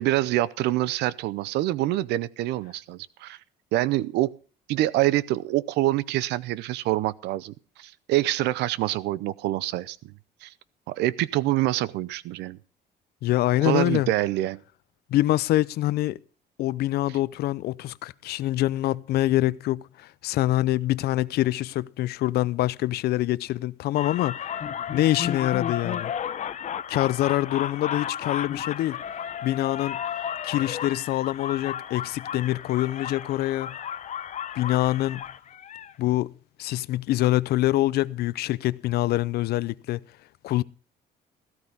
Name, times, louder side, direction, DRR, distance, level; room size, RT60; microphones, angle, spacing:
voice 1, 0.0-3.4 3.7-4.3 4.7-7.5 7.8-10.0 10.4-10.5 10.9-12.6 13.6-14.6, right 15 dB, 85° right, 0.7 m, -26 dB
voice 2, 13.2-14.1 15.1-16.2 16.6-24.4 24.9-26.1 26.9-29.0 29.4-30.0 30.4-33.7 34.6-35.2 36.0-36.3 36.6-40.0 40.4-40.6, left 15 dB, 70° left, 0.6 m, -25 dB
sound 1, 24.0-35.9, left 9 dB, 45° left, 0.9 m, -33 dB
14.5 x 13.5 x 3.5 m
cardioid pair, 110°, 17 cm